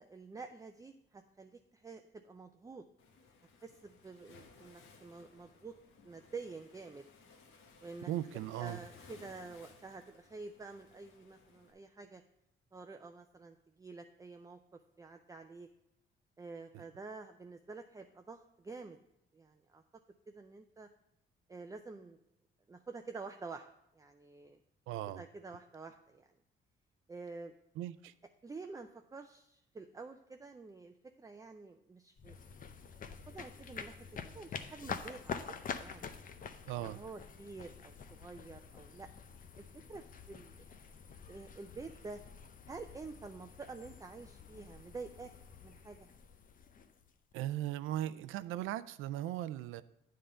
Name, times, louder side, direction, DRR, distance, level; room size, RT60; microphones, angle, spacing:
voice 1, 0.0-2.8 3.6-5.8 6.0-7.0 7.8-8.1 8.6-12.2 12.7-15.7 16.4-19.0 19.3-19.8 20.3-20.9 21.5-22.2 22.7-23.7 23.9-24.6 25.2-26.3 27.1-27.5 28.4-32.4 33.3-34.0 34.3-36.1 36.8-39.1 39.6-40.6 41.3-42.2 42.7-45.3 45.6-46.1, right 4 dB, 15° right, 6 dB, 0.4 m, -49 dB
Waves surf, 3.0-11.7, left 4 dB, 85° left, 1.1 m, -60 dB
voice 2, 8.1-8.8 16.7-16.8 24.9-25.2 27.8-28.1 36.7-37.0 47.3-49.8, right 13 dB, 90° right, 15 dB, 0.4 m, -38 dB
sound 1, 32.2-47.3, left 6 dB, 45° left, 0.6 m, -47 dB
8.8 x 3.8 x 6.7 m, 0.82 s
cardioid pair, 90°, 20 cm